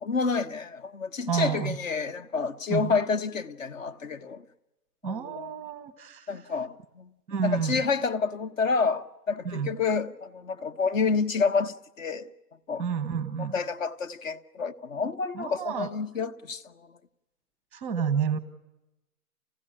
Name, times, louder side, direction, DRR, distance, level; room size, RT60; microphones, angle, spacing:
voice 1, 0.0-4.4 5.0-5.5 6.3-7.1 7.4-12.3 12.7-12.8 13.4-16.9, left 5 dB, 55° left, 1.3 m, -29 dB
voice 2, 1.3-1.8 2.7-2.9 5.0-6.4 7.3-7.8 9.4-9.7 12.8-13.5 15.3-15.9 17.7-18.4, right 7 dB, 5° right, 0.8 m, -30 dB
29.0 x 15.5 x 9.9 m
hypercardioid pair, 155°, 47 cm